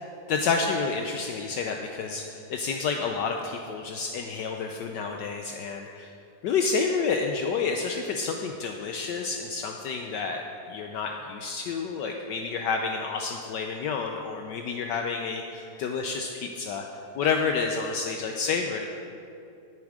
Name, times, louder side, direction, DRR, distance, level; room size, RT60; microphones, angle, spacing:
voice 1, 0.3-6.1 6.4-10.4 10.7-16.8 17.2-18.9, left 5 dB, 70° left, 3 dB, 1.3 m, -29 dB
18.0 x 7.1 x 4.9 m, 2.6 s
omnidirectional pair, 2.1 m